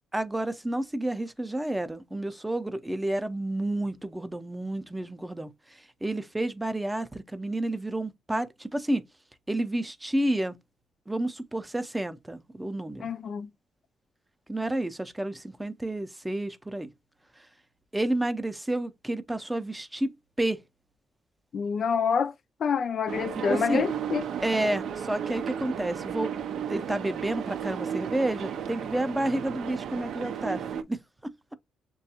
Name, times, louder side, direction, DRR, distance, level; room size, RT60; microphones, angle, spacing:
voice 1, 0.1-9.0 9.5-10.5 11.1-13.1 14.5-16.9 17.4-17.5 17.9-20.6 23.5-23.9 24.4-26.3 26.7-31.5, right 1 dB, 10° right, 0.5 m, -30 dB
voice 2, 13.0-13.5 21.5-22.3 22.6-24.2, left 6 dB, 55° left, 0.3 m, -27 dB
sound 1, 23.1-30.8, right 8 dB, 70° right, 0.4 m, -34 dB
6.6 x 2.3 x 2.7 m
cardioid pair, 90°, 0 cm